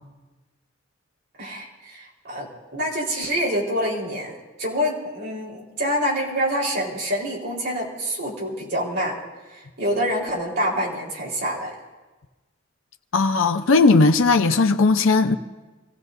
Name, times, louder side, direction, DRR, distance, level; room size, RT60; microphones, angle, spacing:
voice 1, 1.4-4.3 4.6-9.2 9.5-11.7, equal, 60° right, 4.3 m, -26 dB
voice 2, 13.1-15.4, left 3 dB, 85° left, 0.6 m, -17 dB
26.5 x 16.0 x 2.7 m
head